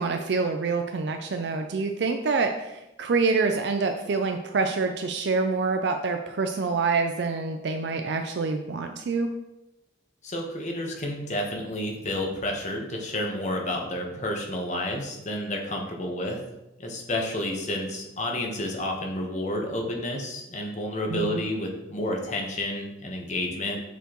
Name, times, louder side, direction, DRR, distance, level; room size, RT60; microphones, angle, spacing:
voice 1, 0.0-9.3 21.1-21.4, right 4 dB, 60° right, 5 dB, 0.4 m, -26 dB
voice 2, 10.2-16.4 16.8-23.8, left 1 dB, 40° left, 1 dB, 1.0 m, -30 dB
7.9 x 4.4 x 3.0 m, 0.94 s
head